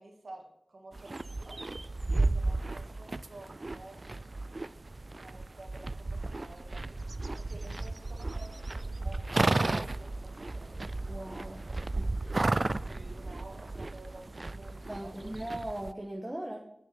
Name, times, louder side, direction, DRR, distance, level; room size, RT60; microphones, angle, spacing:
voice 1, 0.0-1.6 2.1-4.0 5.2-7.0 7.3-9.2 9.7-10.7 12.7-15.3, right 2 dB, 65° right, 0 dB, 2.2 m, -51 dB
sound 1, 0.9-15.9, right 2 dB, 45° right, 0.3 m, -34 dB
voice 2, 11.1-11.6 12.0-12.1 12.9-13.1 14.9-16.6, right 1 dB, 15° right, -1 dB, 1.3 m, -39 dB
8.9 x 6.3 x 5.3 m, 0.76 s
wide cardioid pair, 55°, 0 cm